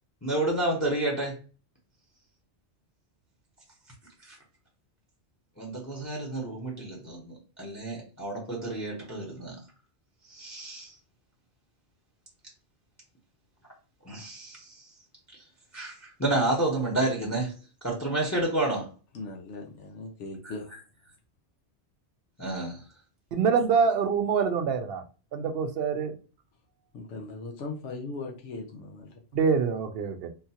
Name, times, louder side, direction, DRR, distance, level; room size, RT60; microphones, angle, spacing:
voice 1, 0.2-1.4 4.3-4.4 5.6-9.6 10.3-10.9 14.0-14.8 15.7-17.5 17.8-18.9 22.4-22.8, right 2 dB, 15° left, 0.7 m, -30 dB
voice 2, 19.1-20.7 26.9-29.2, left 3 dB, 85° left, 1.0 m, -39 dB
voice 3, 23.3-25.0 25.3-26.1 29.3-30.3, right 6 dB, 65° right, 0.7 m, -25 dB
3.6 x 2.3 x 2.8 m
omnidirectional pair, 1.2 m